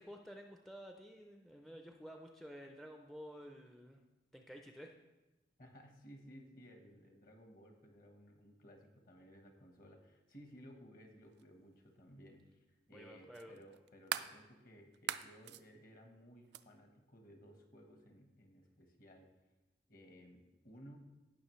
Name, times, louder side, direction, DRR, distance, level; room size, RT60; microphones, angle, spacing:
voice 1, 0.0-4.0 4.3-4.9 12.9-13.6, equal, ahead, 3 dB, 0.4 m, -52 dB
voice 2, 5.6-19.3 19.9-21.0, equal, 50° left, 4 dB, 1.2 m, -58 dB
sound 1, 11.4-11.5 13.3-14.4 14.9-15.6 16.5-16.6, right 10 dB, 65° right, 0.3 m, -40 dB
16.0 x 6.0 x 3.1 m, 1.1 s
head